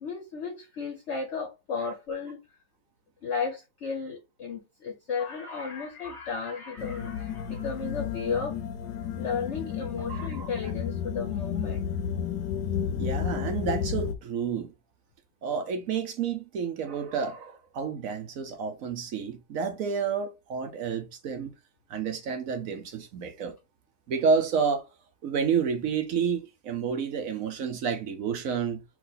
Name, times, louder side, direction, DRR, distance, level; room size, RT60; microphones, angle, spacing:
voice 1, 0.0-2.4 3.2-8.6 9.2-11.8, left 5 dB, 55° left, 0.9 m, -34 dB
sound 1, 6.8-14.1, left 7 dB, 90° left, 1.2 m, -32 dB
voice 2, 10.1-10.7 13.0-14.7 15.4-21.5 21.9-23.5 24.1-24.8 25.2-28.8, right 6 dB, 65° right, 1.1 m, -30 dB
4.7 x 2.5 x 4.0 m
omnidirectional pair, 1.7 m